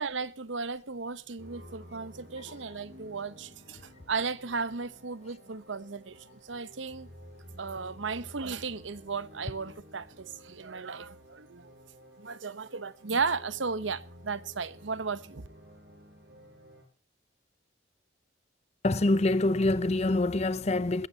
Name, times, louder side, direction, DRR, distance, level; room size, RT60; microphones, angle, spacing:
voice 1, 0.0-3.8 4.1-7.1 7.5-11.7 12.2-15.5, right 4 dB, 80° right, 0.9 m, -35 dB
sound 1, 1.4-16.8, equal, 60° right, 5.6 m, -52 dB
voice 2, 18.8-21.1, left 2 dB, 35° left, 0.6 m, -25 dB
21.5 x 15.5 x 2.9 m
head